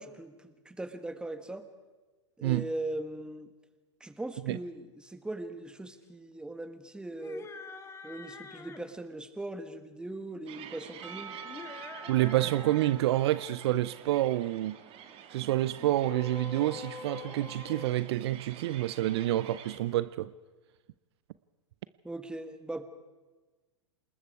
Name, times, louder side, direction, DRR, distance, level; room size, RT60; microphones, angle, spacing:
voice 1, 0.0-1.7 2.4-3.5 4.0-7.5 8.0-11.4 22.0-22.9, right 2 dB, 5° right, 1.4 m, -40 dB
sound 1, 7.1-8.9 11.4-12.9 13.2-13.6 15.8-18.7, left 5 dB, 15° left, 1.6 m, -46 dB
sound 2, 10.5-19.8, right 8 dB, 35° right, 2.2 m, -49 dB
Percussion / Church bell, 11.0-15.4, right 7 dB, 75° right, 2.0 m, -48 dB
voice 2, 12.1-14.8 15.3-20.3, right 15 dB, 55° right, 0.5 m, -28 dB
28.0 x 20.0 x 4.8 m
figure-of-eight pair, 100°, 16 cm